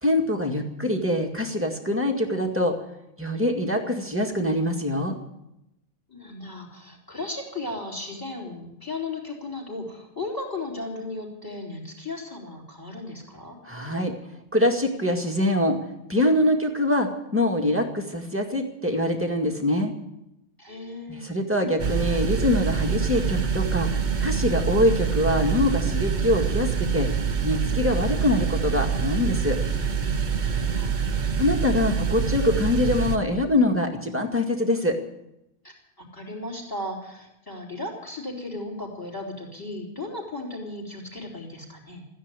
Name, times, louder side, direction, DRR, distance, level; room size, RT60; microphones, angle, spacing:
voice 1, 0.0-2.7 3.2-5.2 13.6-14.1 14.5-15.8 16.1-19.9 21.1-23.9 24.2-27.1 27.4-29.6 31.4-35.0, left 1 dB, 10° right, 2 dB, 1.9 m, -24 dB
voice 2, 6.1-13.6 20.6-21.3 30.4-31.0 35.6-42.1, left 2 dB, 15° left, -1 dB, 3.7 m, -36 dB
sound 1, 21.8-33.2, right 6 dB, 35° right, 1.0 m, -25 dB
14.5 x 10.0 x 9.8 m, 0.87 s
omnidirectional pair, 1.5 m